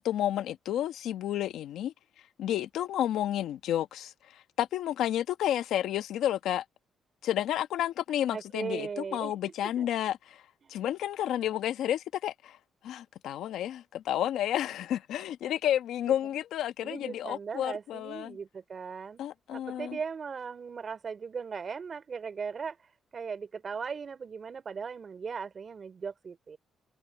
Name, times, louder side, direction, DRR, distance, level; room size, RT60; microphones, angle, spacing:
voice 1, 0.0-1.9 2.4-6.6 7.2-10.4 10.7-12.6 12.8-18.4 19.2-20.0, left 11 dB, 80° left, 1.3 m, -31 dB
voice 2, 8.3-9.3 9.8-9.9 10.6-10.8 16.8-19.2 19.5-22.8 23.1-26.6, right 6 dB, 45° right, 3.8 m, -38 dB
cardioid pair, 90°, 0 cm